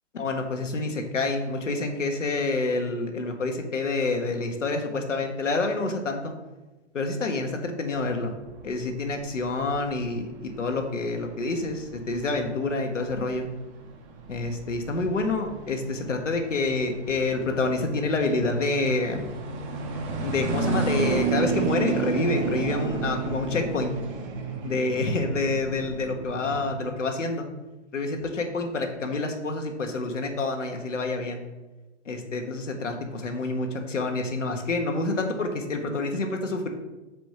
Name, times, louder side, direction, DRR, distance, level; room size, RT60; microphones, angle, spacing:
voice 1, 0.1-6.3 6.9-8.3 8.6-13.5 14.3-19.3 20.2-23.9 24.6-27.4 27.9-31.4 32.0-36.7, left 3 dB, 90° left, 4 dB, 1.5 m, -28 dB
sound 1, 7.9-26.9, right 4 dB, 25° right, 1.0 m, -32 dB
6.3 x 5.1 x 4.9 m, 1.1 s
hypercardioid pair, 140°, 36 cm